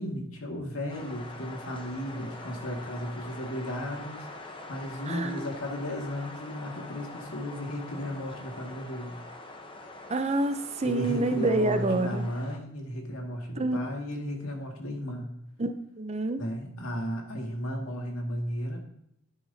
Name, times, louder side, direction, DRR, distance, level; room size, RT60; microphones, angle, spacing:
voice 1, 0.0-9.2 10.8-15.3 16.4-18.8, equal, 90° left, 1 dB, 2.1 m, -34 dB
sound 1, 0.9-12.6, left 2 dB, 25° left, 0.9 m, -44 dB
voice 2, 5.1-5.5 10.1-12.3 13.6-13.8 15.6-16.4, right 2 dB, 30° right, 9 dB, 0.6 m, -28 dB
11.0 x 9.7 x 2.8 m, 0.78 s
head